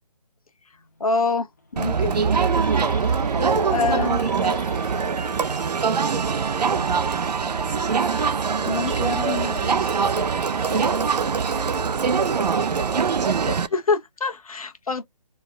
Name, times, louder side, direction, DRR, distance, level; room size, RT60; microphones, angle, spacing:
sound 1, 0.8-8.3, left 3 dB, 25° left, 0.6 m, -44 dB
voice 1, 1.0-1.5 1.7-2.2 3.6-4.2 8.6-9.8 13.7-15.0, left 4 dB, 65° left, 0.8 m, -25 dB
Crowd, 1.8-13.7, right 6 dB, 90° right, 0.5 m, -23 dB
voice 2, 3.1-6.9 8.5-13.7, right 3 dB, 50° right, 0.9 m, -35 dB
Harp, 3.4-5.1 5.5-5.9 6.4-6.6, left 1 dB, 20° right, 0.5 m, -38 dB
3.3 x 2.2 x 3.4 m
hypercardioid pair, 170°, 20 cm